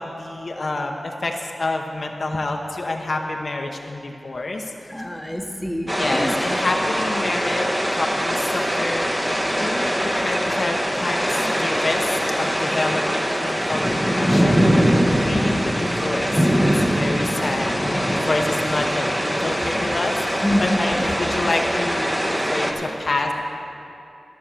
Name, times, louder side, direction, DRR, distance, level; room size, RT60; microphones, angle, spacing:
voice 1, 0.0-4.9 6.0-9.2 9.6-13.9 14.2-14.7 15.2-23.3, left 2 dB, 60° left, 2 dB, 0.8 m, -28 dB
voice 2, 4.9-6.4 11.4-11.7 15.1-15.2 19.6-19.9 20.4-21.1 22.3-23.1, equal, 10° left, 1 dB, 1.3 m, -28 dB
sound 1, 5.9-22.7, equal, 15° right, 1.3 m, -22 dB
14.0 x 6.3 x 6.8 m, 2.8 s
cardioid pair, 50°, 0 cm